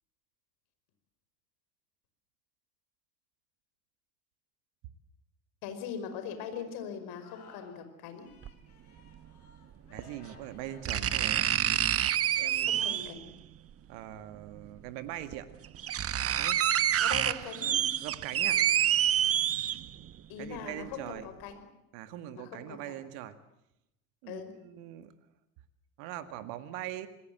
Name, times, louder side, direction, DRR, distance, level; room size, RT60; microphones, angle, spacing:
voice 1, 5.6-8.3 12.6-13.3 17.0-17.8 20.3-21.6 22.3-23.0 24.3-24.5, left 7 dB, 55° left, 8 dB, 5.3 m, -41 dB
Singing, 7.1-7.9 8.1-12.9, left 4 dB, 80° left, 5.7 m, -56 dB
sound 1, 8.4-8.5 10.0-10.1 10.9-13.2 14.6-14.7 15.3-15.4 15.6-20.1 20.5-20.6, right 10 dB, 30° right, 1.2 m, -27 dB
voice 2, 9.9-11.4 12.4-13.0 13.9-15.5 16.4-16.6 18.0-18.6 20.4-21.2 21.9-23.3 24.2-25.1 26.0-27.1, right 12 dB, 60° right, 10 dB, 2.1 m, -41 dB
27.0 x 21.0 x 7.9 m, 0.87 s
hypercardioid pair, 75°, 44 cm